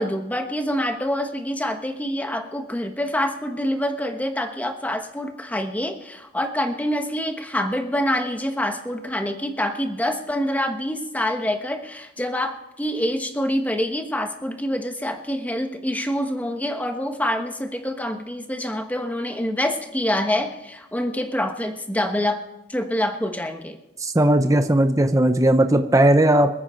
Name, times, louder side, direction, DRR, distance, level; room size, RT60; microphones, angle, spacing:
voice 1, 0.0-22.4 22.7-23.8, left 1 dB, 10° left, 5 dB, 1.2 m, -26 dB
voice 2, 24.0-26.5, right 1 dB, 15° right, 7 dB, 0.7 m, -17 dB
26.0 x 9.2 x 4.5 m, 0.93 s
head